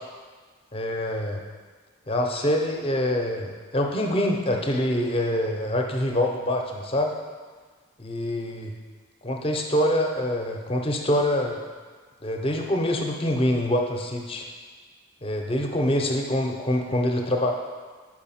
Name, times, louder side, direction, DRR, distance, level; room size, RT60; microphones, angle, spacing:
voice 1, 0.7-1.4 2.1-7.1 8.0-8.7 9.2-11.6 12.2-14.5 15.2-17.5, left 1 dB, 25° left, 2 dB, 0.6 m, -25 dB
4.9 x 4.8 x 5.6 m, 1.5 s
head